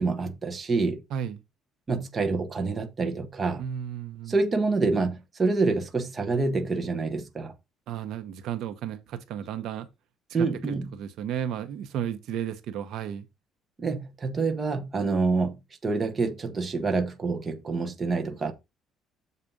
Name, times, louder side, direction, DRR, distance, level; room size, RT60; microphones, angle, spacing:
voice 1, 0.0-1.0 1.9-3.6 4.3-7.5 10.3-10.9 13.8-15.6 15.8-18.5, right 3 dB, 20° right, 0.9 m, -27 dB
voice 2, 1.1-1.4 3.6-4.4 7.9-9.9 10.3-13.3, right 9 dB, 55° right, 0.9 m, -33 dB
7.3 x 4.1 x 5.2 m
cardioid pair, 180°, 0 cm